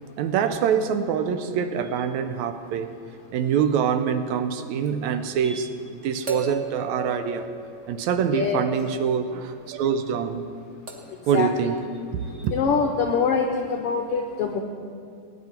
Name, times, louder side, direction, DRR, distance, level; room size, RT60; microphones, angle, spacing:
voice 1, 0.2-2.9 3.3-7.5 7.9-10.5 11.3-11.8 12.4-12.6, right 7 dB, 75° right, 9 dB, 1.9 m, -25 dB
sound 1, 4.9-5.0 6.3-8.3 10.9-11.3 12.4-12.5, right 2 dB, 35° right, 1.2 m, -35 dB
voice 2, 8.3-8.6 11.1-11.5 12.2-14.6, left 5 dB, 85° left, 3 dB, 1.3 m, -25 dB
19.5 x 10.5 x 4.4 m, 2.4 s
omnidirectional pair, 3.5 m